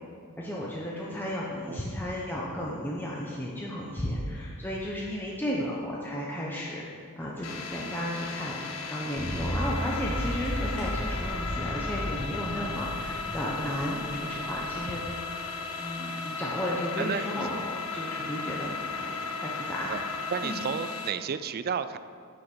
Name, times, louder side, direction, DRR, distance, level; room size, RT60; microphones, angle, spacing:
voice 1, 0.4-6.9 7.2-8.6 8.9-15.0 15.4-17.6 17.9-20.0 20.4-20.6, equal, 10° left, -4 dB, 0.8 m, -34 dB
sound 1, 7.4-21.1, left 4 dB, 75° left, 0.8 m, -36 dB
sound 2, 9.2-14.7, equal, 25° left, 2.6 m, -35 dB
voice 2, 17.0-17.5 19.9-20.0 20.3-22.0, right 7 dB, 45° right, 12 dB, 0.4 m, -32 dB
9.6 x 5.8 x 6.1 m, 2.3 s
head